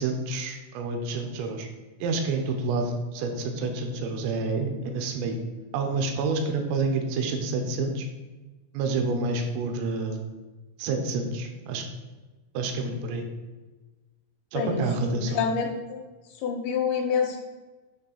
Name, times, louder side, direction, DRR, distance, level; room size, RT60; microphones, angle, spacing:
voice 1, 0.0-1.7 2.0-5.4 5.7-8.1 8.7-10.2 10.8-11.9 12.6-13.3 14.5-15.4, right 3 dB, 85° right, 4 dB, 3.4 m, -28 dB
voice 2, 15.1-16.0 16.4-17.4, left 6 dB, 80° left, 1 dB, 3.3 m, -27 dB
9.3 x 3.2 x 6.5 m, 1.2 s
omnidirectional pair, 5.8 m